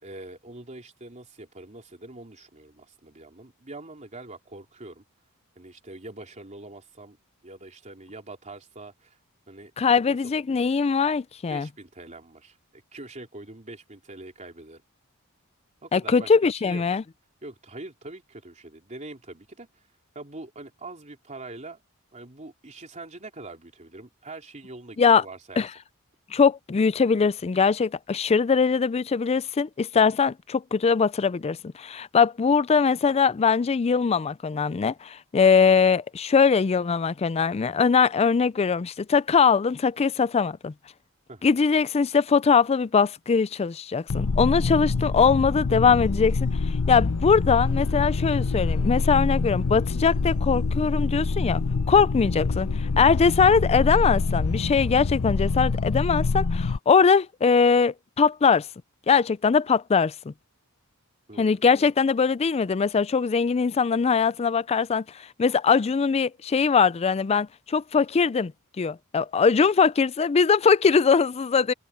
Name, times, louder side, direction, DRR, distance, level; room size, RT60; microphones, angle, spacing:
voice 1, 0.0-5.0 5.5-7.2 7.4-9.2 9.5-10.2 11.5-14.8 15.8-16.8 17.4-19.7 20.1-21.8 22.1-25.6 41.3-41.6 52.0-52.1 57.0-57.1 61.3-61.6, right 2 dB, 30° right, 3.4 m, -43 dB
voice 2, 9.8-11.7 15.9-17.0 25.0-25.2 25.6-25.7 26.3-40.7 41.4-46.4 46.9-51.6 51.9-58.7 59.1-60.3 61.4-68.5 68.8-71.7, left 5 dB, 30° left, 0.3 m, -21 dB
sound 1, 44.1-56.8, left 4 dB, 70° left, 0.7 m, -26 dB
head